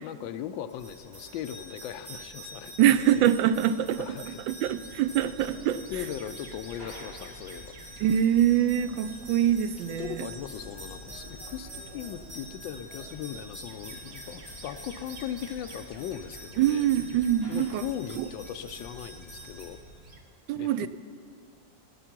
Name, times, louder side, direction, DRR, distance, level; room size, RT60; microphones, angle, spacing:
voice 1, 0.0-3.3 4.0-4.4 5.9-7.7 9.9-16.9 17.5-19.8 20.5-20.9, left 10 dB, 85° left, 9 dB, 1.3 m, -38 dB
sound 1, 0.7-19.6, right 1 dB, 20° right, 4.3 m, -46 dB
voice 2, 2.8-4.2 4.5-5.9 8.0-10.3 16.6-17.8 18.2-18.3 20.5-20.9, right 10 dB, 85° right, 13 dB, 1.3 m, -24 dB
sound 2, 4.6-20.2, right 1 dB, 35° right, 1.0 m, -49 dB
17.0 x 10.0 x 5.9 m, 2.3 s
omnidirectional pair, 2.0 m